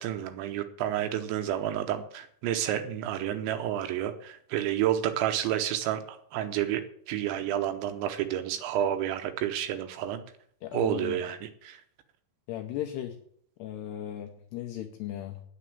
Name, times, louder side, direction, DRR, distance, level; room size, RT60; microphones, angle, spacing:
voice 1, 0.0-10.2 10.7-11.8, right 11 dB, 80° right, 8 dB, 2.9 m, -30 dB
voice 2, 10.6-11.2 12.5-13.2 13.6-15.4, left 12 dB, 85° left, 4 dB, 2.4 m, -36 dB
9.7 x 6.8 x 8.6 m, 0.63 s
omnidirectional pair, 5.7 m